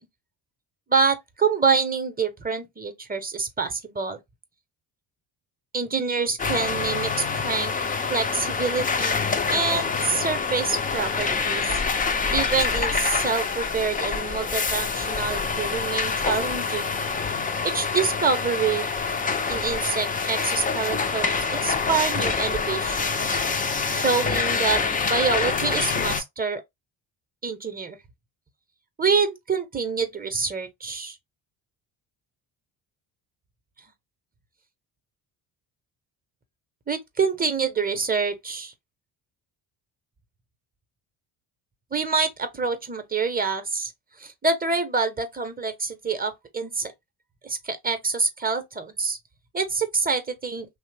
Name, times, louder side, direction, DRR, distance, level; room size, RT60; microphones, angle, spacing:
voice 1, 0.9-4.2 5.7-7.7 8.1-11.8 12.3-17.0 17.6-18.9 19.5-23.4 23.9-26.6 27.4-28.0 29.0-31.2 36.9-38.7 41.9-43.9 44.2-46.9 47.4-49.2 49.5-50.7, right 5 dB, 20° right, 0.7 m, -26 dB
sound 1, 6.4-26.2, left 5 dB, 20° left, 0.3 m, -26 dB
2.8 x 2.0 x 3.2 m
supercardioid pair, 70°, 49 cm